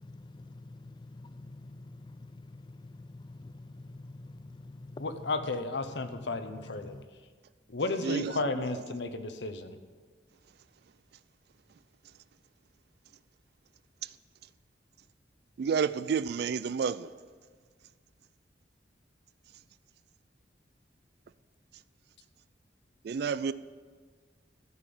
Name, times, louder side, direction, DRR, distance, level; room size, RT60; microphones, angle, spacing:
voice 1, 0.0-5.3 5.9-7.1, left 2 dB, 25° left, 0.3 m, -47 dB
voice 2, 5.0-7.0 7.7-9.8, left 3 dB, 80° left, 0.9 m, -33 dB
voice 3, 8.0-8.4 15.6-17.1 23.0-23.5, right 6 dB, 65° right, 0.3 m, -30 dB
13.5 x 5.9 x 7.8 m
head